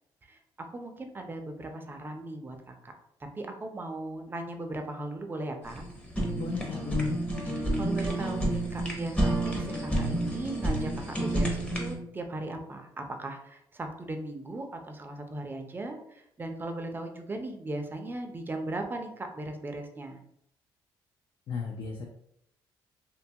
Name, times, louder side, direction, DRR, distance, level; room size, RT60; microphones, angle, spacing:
voice 1, 0.3-2.9 3.3-5.8 7.5-20.2, right 2 dB, 20° right, 5 dB, 0.4 m, -38 dB
Fire, 5.6-11.9, right 1 dB, 15° left, 0.7 m, -30 dB
voice 2, 6.3-7.2 21.5-22.1, left 5 dB, 55° left, 1 dB, 0.4 m, -35 dB
2.7 x 2.3 x 2.7 m, 0.75 s
cardioid pair, 100°, 9 cm